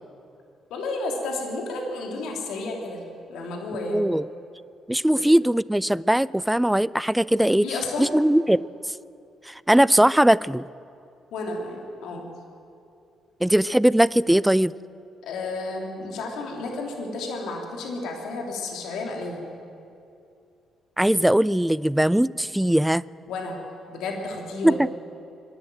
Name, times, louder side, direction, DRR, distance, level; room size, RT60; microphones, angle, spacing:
voice 1, 0.7-3.0 3.3-4.0 7.5-8.1 11.3-12.2 15.2-19.4 23.3-23.6 23.9-24.8, left 3 dB, 65° left, 1 dB, 3.0 m, -32 dB
voice 2, 3.9-4.3 4.9-7.7 8.0-8.7 9.5-10.6 13.4-14.7 21.0-23.1 24.6-24.7, right 1 dB, 5° right, 21 dB, 0.5 m, -20 dB
24.0 x 12.0 x 9.2 m, 2.5 s
figure-of-eight pair, 40°, 0 cm